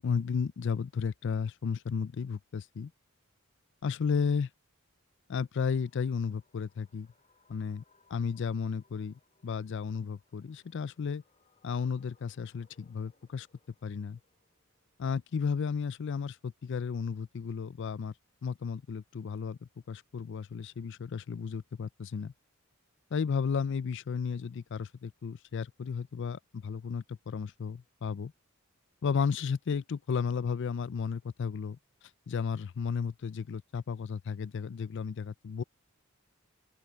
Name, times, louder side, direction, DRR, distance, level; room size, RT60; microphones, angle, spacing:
voice 1, 0.0-2.9 3.8-4.5 5.3-7.1 7.5-7.8 8.1-11.2 11.6-13.5 13.8-14.2 15.0-18.1 18.4-19.6 19.9-22.3 23.1-28.3 29.0-31.8 32.3-35.6, left 6 dB, 60° left, 0.4 m, -33 dB
sound 1, 5.8-15.9, left 4 dB, 35° left, 5.6 m, -70 dB
open air
head